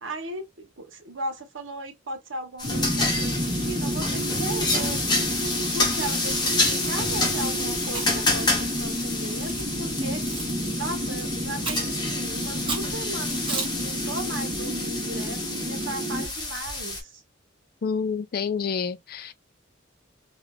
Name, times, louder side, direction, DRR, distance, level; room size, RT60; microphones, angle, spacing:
voice 1, 0.0-5.3 5.7-10.2 10.8-17.2, right 2 dB, 90° right, 1.1 m, -37 dB
sound 1, 2.6-17.0, left 2 dB, 20° left, 0.8 m, -28 dB
sound 2, 2.6-16.3, right 1 dB, 45° right, 1.2 m, -31 dB
Chewing mastication, 7.8-8.3 9.0-9.6 10.3-10.5 11.6-12.0 12.7-12.9 13.5-13.8, right 4 dB, 25° right, 1.0 m, -33 dB
voice 2, 17.8-19.3, left 5 dB, 50° left, 0.4 m, -28 dB
3.4 x 2.4 x 2.3 m
head